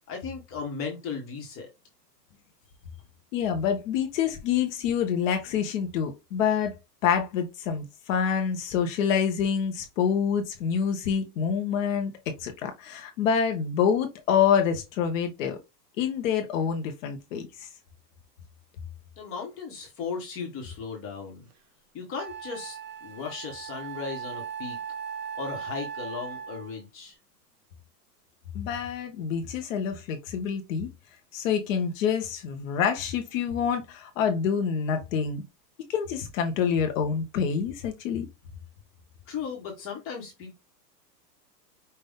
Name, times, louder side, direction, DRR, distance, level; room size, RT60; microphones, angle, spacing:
voice 1, 0.1-1.7 19.2-21.5 21.9-24.8 25.4-27.2 39.3-40.6, left 5 dB, 25° left, 1.3 m, -36 dB
voice 2, 3.3-6.7 7.0-12.1 12.4-15.6 16.0-17.7 28.5-30.9 31.3-35.4 35.9-38.3, left 7 dB, 50° left, 1.0 m, -27 dB
Wind instrument woodwind instrument, 21.5-21.6 22.1-26.8, right 7 dB, 30° right, 0.4 m, -38 dB
5.6 x 2.6 x 3.5 m
supercardioid pair, 150°, 49 cm